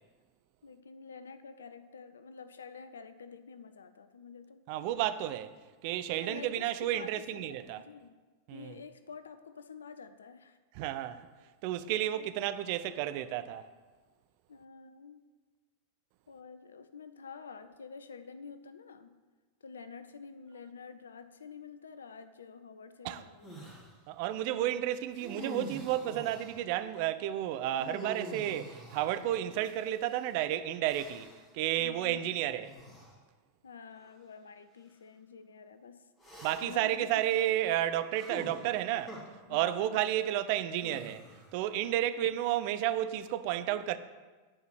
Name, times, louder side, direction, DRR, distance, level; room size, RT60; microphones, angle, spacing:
voice 1, 0.6-4.6 6.2-8.1 8.5-10.6 12.0-12.3 14.5-15.2 16.3-19.2 19.6-23.7 31.8-32.5 33.6-36.0 36.6-37.0 39.5-40.0 41.8-42.3, left 5 dB, 70° left, 0.6 m, -49 dB
voice 2, 4.7-5.5 5.8-7.8 8.5-8.8 10.7-11.3 11.6-13.7 23.0-23.2 24.1-31.3 31.5-32.7 36.4-39.2 39.5-41.2 41.5-44.0, right 12 dB, 45° right, 0.5 m, -32 dB
sound 1, 23.4-23.9 25.1-26.7 27.8-30.1 30.9-31.5 32.6-33.1 34.0-34.1 36.2-36.9 38.1-39.2 40.8-41.6, right 1 dB, 20° left, 2.9 m, -46 dB
9.6 x 4.8 x 7.9 m
figure-of-eight pair, 90°, 0 cm